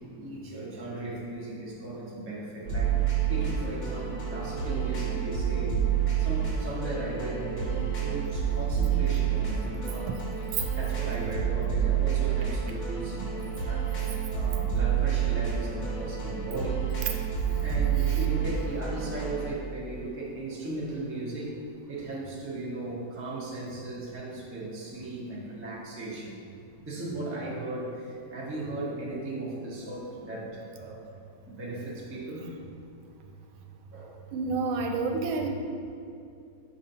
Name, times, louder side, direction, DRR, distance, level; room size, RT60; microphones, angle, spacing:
voice 1, 0.2-5.8 6.2-10.5 10.8-13.9 14.3-16.9 17.6-21.6 21.9-26.3 26.9-31.1 31.5-32.5 33.9-34.3, right 2 dB, 15° right, -5 dB, 0.4 m, -37 dB
sound 1, 2.6-19.5, right 8 dB, 45° left, 2.0 m, -29 dB
voice 2, 34.3-35.5, right 3 dB, 85° right, 3 dB, 1.4 m, -28 dB
6.9 x 2.7 x 5.5 m, 2.5 s
omnidirectional pair, 2.1 m